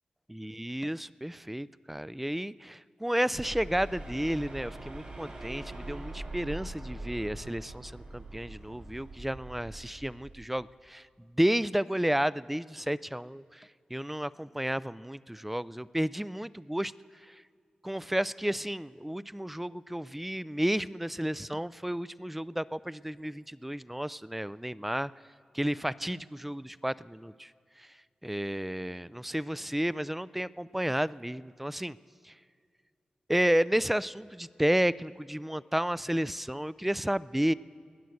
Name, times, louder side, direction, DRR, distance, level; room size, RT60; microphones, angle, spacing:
voice 1, 0.3-11.0 11.3-16.9 17.2-17.4 17.8-25.1 25.5-27.5 27.8-27.9 28.2-32.0 32.2-32.3 33.3-37.5, right 1 dB, 5° right, 19 dB, 0.3 m, -32 dB
sound 1, 3.3-10.4, right 2 dB, 50° right, 3.5 m, -43 dB
19.5 x 9.4 x 7.8 m, 2.2 s
wide cardioid pair, 75°, 2 cm